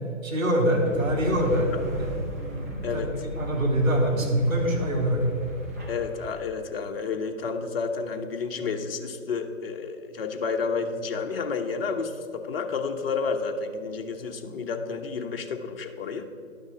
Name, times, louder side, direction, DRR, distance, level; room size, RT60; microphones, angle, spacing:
voice 1, 0.2-5.2, equal, 85° right, 1 dB, 2.6 m, -25 dB
sound 1, 0.7-6.4, right 1 dB, 15° right, 0.5 m, -37 dB
voice 2, 5.9-16.2, left 5 dB, 45° left, 4 dB, 1.0 m, -30 dB
11.0 x 6.4 x 4.9 m, 2.5 s
figure-of-eight pair, 140°, 40 cm